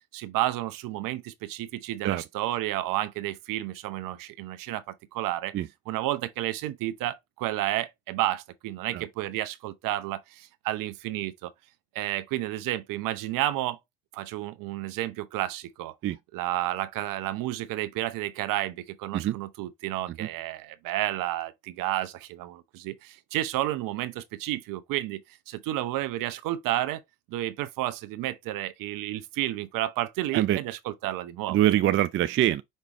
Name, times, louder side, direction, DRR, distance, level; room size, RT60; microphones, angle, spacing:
voice 1, 0.1-5.5 5.9-11.5 11.9-13.8 14.1-15.9 16.3-25.2 25.5-27.0 27.3-31.6, right 15 dB, 60° right, 0.8 m, -31 dB
voice 2, 31.5-32.6, right 13 dB, 35° right, 0.4 m, -24 dB
5.3 x 3.3 x 3.0 m
hypercardioid pair, 65°, 38 cm